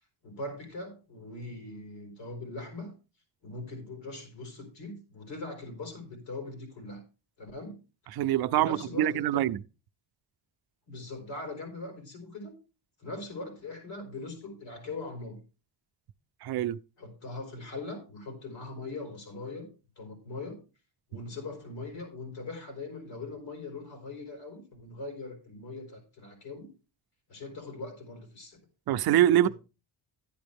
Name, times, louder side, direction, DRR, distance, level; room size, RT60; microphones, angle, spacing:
voice 1, 0.2-2.9 3.4-7.0 7.4-7.8 8.6-9.4 10.9-12.5 13.0-15.4 17.0-19.7 20.0-20.6 21.1-26.7 27.3-28.6 29.4-29.5, left 2 dB, 80° left, 5.1 m, -41 dB
voice 2, 8.2-9.6 16.4-16.8 28.9-29.5, right 12 dB, 60° right, 0.5 m, -24 dB
11.5 x 9.8 x 3.5 m
cardioid pair, 135°, 43 cm